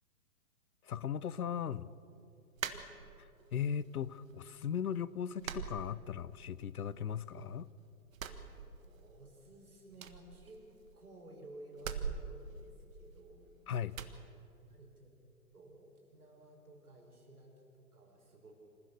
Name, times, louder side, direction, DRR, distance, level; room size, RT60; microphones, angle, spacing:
voice 1, 0.8-1.9 3.5-7.7 13.7-14.0, left 8 dB, 80° left, 19 dB, 0.8 m, -37 dB
sound 1, 2.6-3.5 3.8-4.5 4.8-5.0 5.4-6.5 6.8-7.6 8.1-9.2 9.5-9.6 9.9-11.1 11.7-13.4 13.9-14.2, right 7 dB, 65° right, 1.6 m, -43 dB
voice 2, 8.3-10.6 10.9-13.5 14.0-14.2 14.7-15.1 15.5-18.5, right 1 dB, 85° right, 1 dB, 5.6 m, -55 dB
26.5 x 15.0 x 6.7 m, 2.9 s
hypercardioid pair, 125°, 44 cm